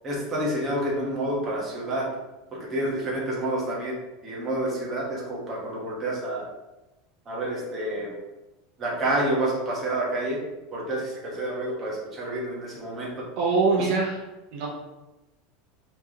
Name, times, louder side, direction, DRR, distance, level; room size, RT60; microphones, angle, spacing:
voice 1, 0.0-2.1 2.5-3.9 4.2-6.4 7.3-8.1 8.8-10.4 10.7-13.1, right 1 dB, 20° right, -5 dB, 1.0 m, -28 dB
voice 2, 13.4-14.2 14.5-14.7, right 4 dB, 45° right, -2 dB, 0.7 m, -23 dB
4.5 x 3.0 x 2.8 m, 1.0 s
supercardioid pair, 170°, 0 cm